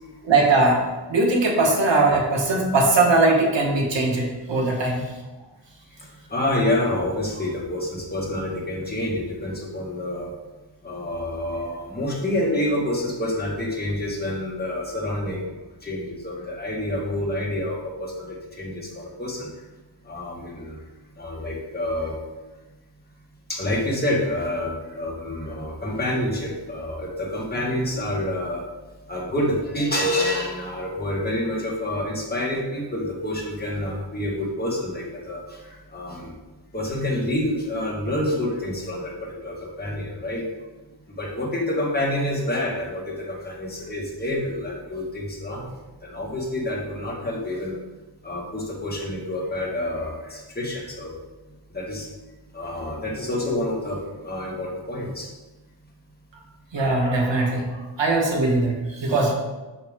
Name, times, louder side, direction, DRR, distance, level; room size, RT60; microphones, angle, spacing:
voice 1, 0.2-0.8 1.1-5.0 56.7-59.3, right 2 dB, 80° right, 0 dB, 1.4 m, -20 dB
voice 2, 6.3-10.3 10.8-15.5 15.8-19.5 20.1-20.8 21.2-22.1 23.5-28.6 29.1-36.3 36.7-40.4 41.2-45.7 46.0-47.8 48.2-51.1 51.7-52.1 52.5-55.3, left 1 dB, 20° left, -4 dB, 1.7 m, -28 dB
6.7 x 5.7 x 3.6 m, 1.2 s
wide cardioid pair, 130°, 43 cm